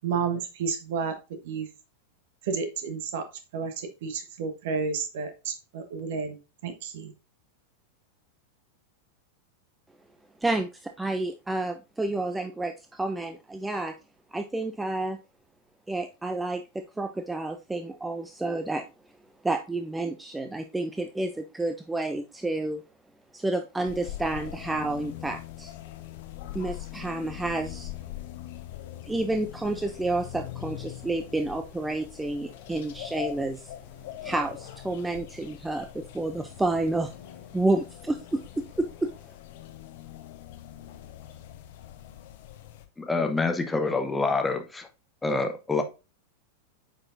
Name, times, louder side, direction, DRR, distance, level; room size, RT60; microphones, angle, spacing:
voice 1, 0.0-1.1 1.4-1.7 2.4-3.2 3.5-6.4 6.6-7.1, right 5 dB, 55° right, 1.3 m, -31 dB
voice 2, 10.4-14.0 14.3-15.2 15.9-18.8 19.4-22.8 23.3-25.7 26.5-27.9 29.1-33.7 34.2-37.1 37.5-39.1, right 2 dB, 10° right, 0.5 m, -30 dB
sound 1, 23.8-42.9, left 13 dB, 50° left, 0.9 m, -42 dB
voice 3, 43.0-44.9 45.2-45.8, left 3 dB, 10° left, 0.8 m, -26 dB
8.5 x 4.9 x 2.6 m
figure-of-eight pair, 90°, 0 cm